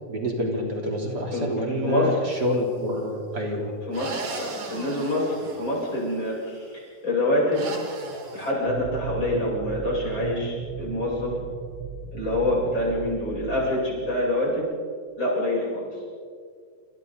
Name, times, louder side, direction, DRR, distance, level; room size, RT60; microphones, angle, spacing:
voice 1, 0.1-3.7, equal, 30° right, -1 dB, 4.0 m, -27 dB
voice 2, 1.8-2.2 3.5-3.6 3.9-7.9 8.3-11.4 12.1-14.7 15.2-15.9, left 1 dB, 30° left, -5 dB, 8.8 m, -26 dB
sound 1, 2.3-2.9 3.9-6.4 7.5-8.5, right 3 dB, 45° right, 3.1 m, -38 dB
sound 2, 8.7-14.6, right 7 dB, 85° right, 3.0 m, -36 dB
29.0 x 28.5 x 4.1 m, 2.1 s
omnidirectional pair, 4.0 m